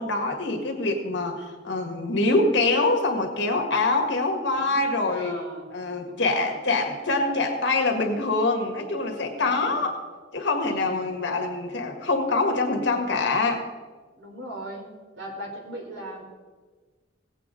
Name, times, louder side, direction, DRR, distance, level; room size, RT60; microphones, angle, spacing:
voice 1, 0.0-5.4 5.7-10.0 10.3-13.6, left 3 dB, 65° left, 3 dB, 1.7 m, -25 dB
voice 2, 4.7-5.7 6.1-6.5 9.3-9.8 10.7-10.9 14.2-14.9 15.2-16.3, right 1 dB, 70° right, -1 dB, 3.4 m, -39 dB
17.5 x 8.4 x 3.8 m, 1.4 s
head